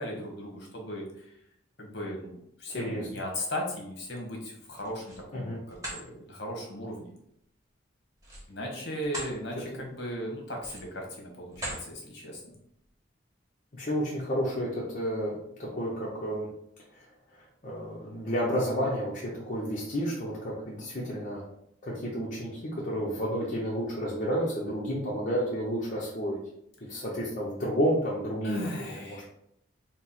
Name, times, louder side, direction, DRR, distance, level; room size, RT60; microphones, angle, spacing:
voice 1, 0.0-1.3 1.8-7.1 8.5-12.5 26.9-27.0 28.4-29.3, equal, 60° left, -1 dB, 1.2 m, -37 dB
voice 2, 2.7-3.1 5.3-5.6 9.7-9.8 13.8-16.5 16.9-17.1 17.3-21.4 21.8-26.4 26.9-29.3, equal, 40° left, -5 dB, 0.7 m, -31 dB
sound 1, 4.7-5.3 5.7-6.0 8.2-9.4 9.8-10.0 10.6-11.0 11.5-11.9, right 1 dB, 15° right, 1.1 m, -39 dB
4.3 x 2.0 x 4.2 m, 0.74 s
head